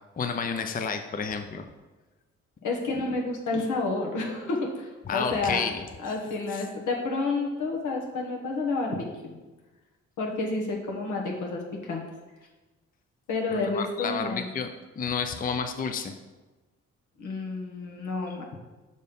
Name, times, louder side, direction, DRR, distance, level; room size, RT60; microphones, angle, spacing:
voice 1, 0.2-1.7 5.1-6.1 6.5-6.6 13.5-16.1, left 6 dB, 30° left, 7 dB, 0.5 m, -31 dB
voice 2, 2.6-5.6 6.0-9.4 10.2-12.0 13.3-14.5 17.2-18.4, left 3 dB, 80° left, 0 dB, 1.3 m, -30 dB
5.4 x 4.1 x 5.3 m, 1.2 s
supercardioid pair, 60°, 30 cm